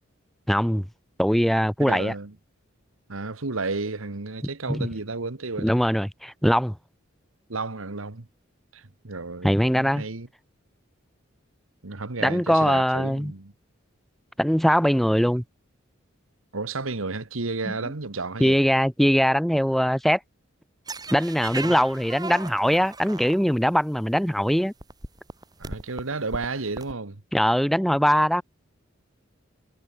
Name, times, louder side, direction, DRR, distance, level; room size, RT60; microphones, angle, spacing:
voice 1, 0.5-0.8 1.2-2.1 4.7-4.9 5.6-6.7 9.4-10.0 12.2-13.3 14.4-15.4 18.4-20.2 21.1-24.7 27.3-28.4, equal, ahead, 1.1 m, -21 dB
voice 2, 1.8-2.3 3.1-5.8 7.5-8.3 8.7-10.3 11.8-13.5 16.5-18.6 21.6-21.8 25.6-27.2, right 3 dB, 90° right, 1.5 m, -32 dB
sound 1, 20.9-23.8 24.5-24.6 24.8-26.9, right 3 dB, 20° right, 5.9 m, -37 dB
head